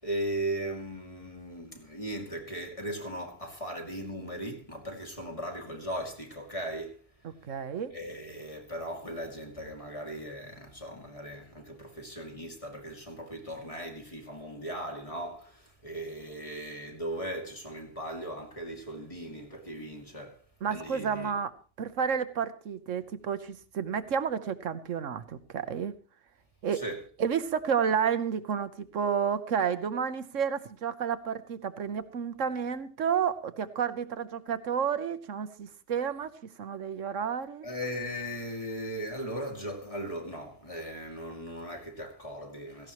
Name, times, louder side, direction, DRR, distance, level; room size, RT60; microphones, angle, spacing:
voice 1, 0.0-7.0 7.9-20.4 20.7-21.3 26.7-27.0 37.6-42.9, right 1 dB, 25° left, 2.6 m, -38 dB
voice 2, 7.2-7.9 20.6-26.0 26.6-26.8 27.2-36.3 36.6-37.7, right 7 dB, 65° right, 1.3 m, -31 dB
17.0 x 15.5 x 3.1 m
omnidirectional pair, 1.4 m